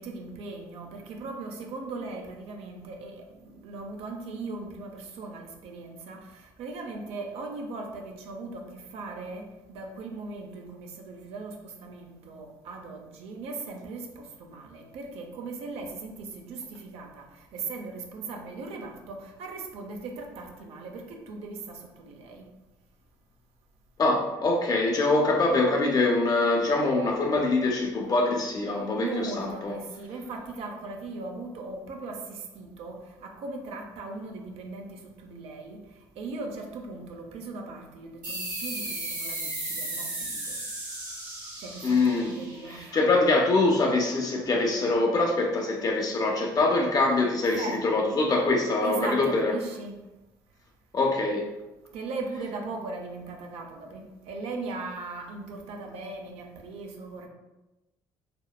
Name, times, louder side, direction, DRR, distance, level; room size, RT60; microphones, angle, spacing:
voice 1, 0.0-22.5 29.0-35.8 36.2-40.6 41.6-43.0 47.4-47.8 48.8-50.0 51.9-57.3, right 3 dB, 65° right, 3 dB, 0.5 m, -38 dB
voice 2, 24.0-29.7 41.8-42.3 42.7-49.5 50.9-51.5, left 2 dB, 35° left, 0 dB, 0.4 m, -24 dB
sound 1, 38.2-43.4, right 2 dB, 80° right, 1.0 m, -35 dB
2.8 x 2.0 x 2.2 m, 1.0 s
hypercardioid pair, 60°, 11 cm